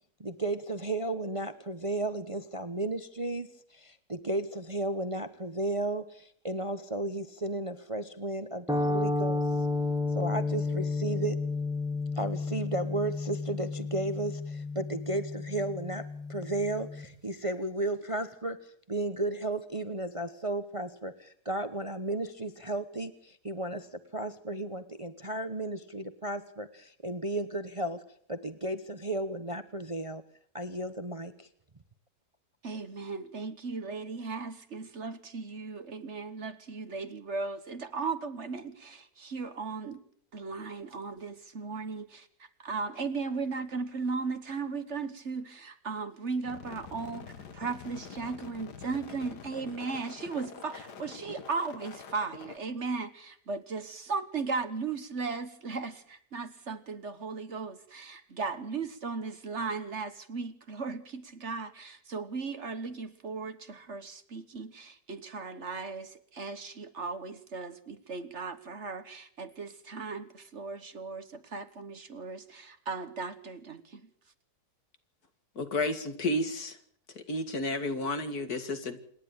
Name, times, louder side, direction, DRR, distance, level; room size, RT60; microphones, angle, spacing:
voice 1, 0.2-9.4 10.1-11.4 12.1-28.0 28.3-30.2 30.5-31.5, right 2 dB, 25° right, 10 dB, 0.9 m, -34 dB
sound 1, 8.7-17.1, left 3 dB, ahead, 1.9 m, -32 dB
voice 2, 32.6-40.0 40.3-42.3 42.6-74.1, right 4 dB, 50° right, 11 dB, 1.4 m, -37 dB
sound 2, 46.4-52.6, left 6 dB, 90° left, 2.1 m, -46 dB
voice 3, 75.6-76.8 77.3-79.0, left 2 dB, 70° left, 8 dB, 2.5 m, -31 dB
27.0 x 11.0 x 9.0 m, 0.65 s
omnidirectional pair, 1.7 m